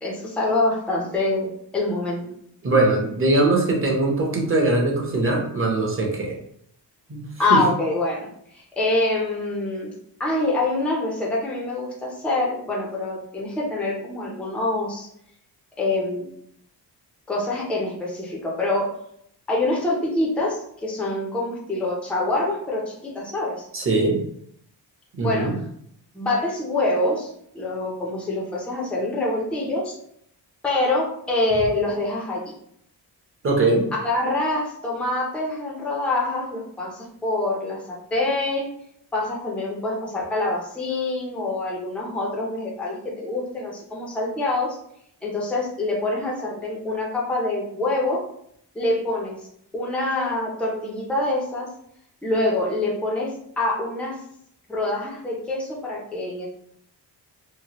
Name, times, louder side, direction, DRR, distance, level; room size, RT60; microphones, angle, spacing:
voice 1, 0.0-2.3 7.4-9.9 10.2-15.1 15.8-16.3 17.3-18.9 19.5-23.7 25.2-25.5 26.1-30.0 30.6-32.4 33.9-38.7 39.1-44.8 45.2-48.2 48.7-49.4 49.7-51.7 52.2-54.2 54.7-56.5, left 2 dB, 5° left, -3 dB, 0.5 m, -25 dB
voice 2, 2.6-6.3 7.1-7.6 23.7-24.2 25.2-25.5 33.4-33.9, right 2 dB, 30° right, -1 dB, 0.7 m, -21 dB
2.9 x 2.1 x 2.9 m, 0.70 s
wide cardioid pair, 130°, 43 cm